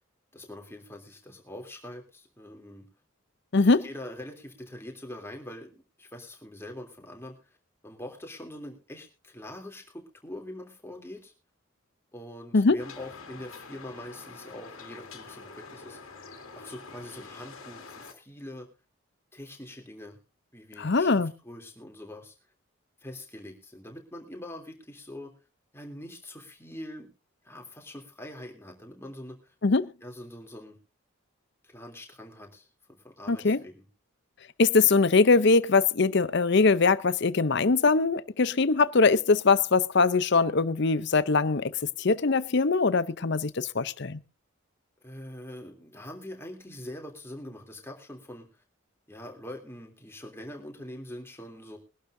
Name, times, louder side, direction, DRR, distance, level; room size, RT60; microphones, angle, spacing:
voice 1, 0.3-2.8 3.6-7.6 7.8-11.3 12.1-16.0 16.5-18.7 19.3-20.2 20.5-22.3 23.0-25.3 25.7-27.1 27.4-29.5 30.0-30.8 31.6-33.8 45.0-48.5 49.1-51.8, left 1 dB, 10° left, 3.1 m, -43 dB
voice 2, 3.5-3.9 12.5-12.8 20.8-21.3 29.6-29.9 33.3-33.6 34.6-44.2, left 4 dB, 55° left, 0.6 m, -22 dB
sound 1, 12.8-18.1, left 4 dB, 80° left, 2.3 m, -46 dB
23.0 x 12.0 x 2.7 m
head